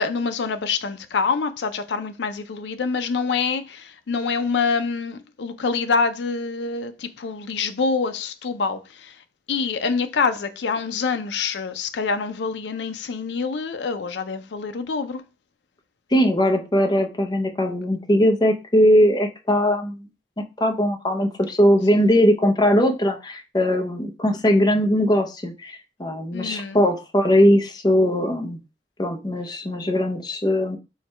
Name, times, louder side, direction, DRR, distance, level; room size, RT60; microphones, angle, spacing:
voice 1, 0.0-15.2 21.9-22.1 26.3-26.8, left 5 dB, 80° left, 0.5 m, -26 dB
voice 2, 16.1-20.1 20.6-28.6 29.0-30.8, equal, 25° left, 0.6 m, -20 dB
4.5 x 2.2 x 4.3 m
head